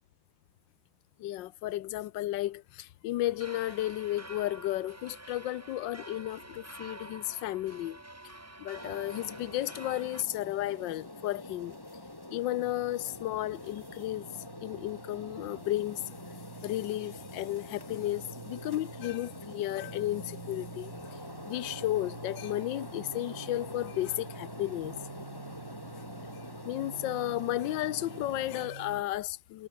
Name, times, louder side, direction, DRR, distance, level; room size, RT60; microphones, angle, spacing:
voice 1, 1.2-8.0 8.6-11.8 12.3-14.3 14.6-16.1 16.6-21.2 21.5-25.0 26.6-29.7, left 15 dB, 75° left, 1.4 m, -33 dB
sound 1, 3.2-10.2, right 2 dB, 10° right, 0.8 m, -48 dB
sound 2, 8.7-28.7, left 1 dB, 10° left, 2.3 m, -45 dB
sound 3, 12.6-29.0, right 7 dB, 55° right, 0.6 m, -49 dB
omnidirectional pair, 2.1 m